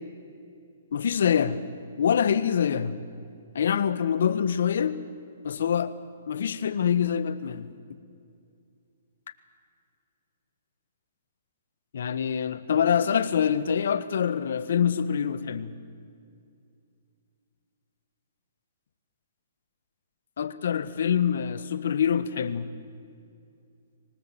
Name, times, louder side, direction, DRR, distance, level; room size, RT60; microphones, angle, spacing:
voice 1, 0.9-1.6 2.0-3.0 3.5-5.0 5.4-5.9 6.3-7.7 11.9-15.7 20.4-22.7, left 8 dB, 70° left, 13 dB, 1.6 m, -25 dB
25.5 x 19.0 x 9.0 m, 2.4 s
hypercardioid pair, 155°, 0 cm